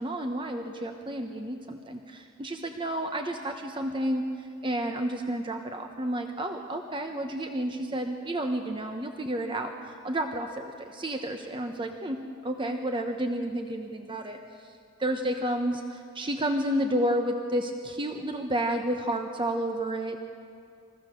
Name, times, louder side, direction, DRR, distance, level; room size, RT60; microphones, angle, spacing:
voice 1, 0.0-14.4 15.0-20.2, right 1 dB, 25° right, 4 dB, 0.9 m, -31 dB
27.0 x 15.0 x 6.7 m, 2.3 s
head